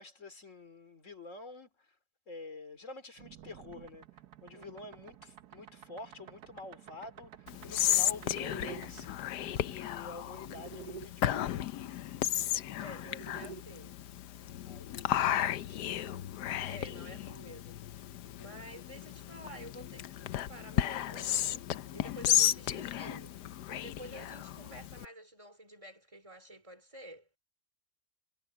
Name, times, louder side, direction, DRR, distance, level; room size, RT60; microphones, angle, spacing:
voice 1, 0.0-2.0 2.3-4.1 4.4-11.6 14.6-15.3 15.6-16.3, left 3 dB, 50° left, 3.1 m, -48 dB
sound 1, 3.2-11.1 12.4-13.6, right 8 dB, 75° right, 1.4 m, -50 dB
Whispering, 7.5-25.1, left 12 dB, 80° left, 1.3 m, -34 dB
voice 2, 12.8-14.0 16.7-18.1 18.4-23.4 23.7-27.3, right 1 dB, 20° right, 4.0 m, -50 dB
omnidirectional pair, 1.7 m